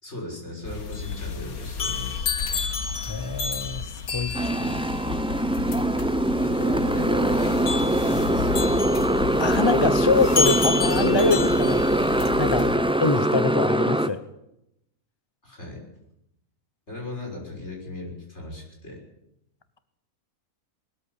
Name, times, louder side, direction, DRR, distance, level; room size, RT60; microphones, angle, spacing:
voice 1, 0.0-2.4 6.4-8.7 12.6-12.9 15.4-15.8 16.9-19.0, left 1 dB, 45° left, 0 dB, 6.7 m, -37 dB
sound 1, 0.6-12.8, left 5 dB, 75° left, 2.0 m, -30 dB
voice 2, 3.1-4.3 4.6-4.8 9.4-11.8 12.2-12.7 13.0-14.2, left 3 dB, 20° left, 11 dB, 0.8 m, -25 dB
Motorcycle, 4.3-14.1, right 1 dB, 10° right, 0.3 m, -23 dB
20.0 x 14.0 x 9.9 m, 0.83 s
omnidirectional pair, 1.6 m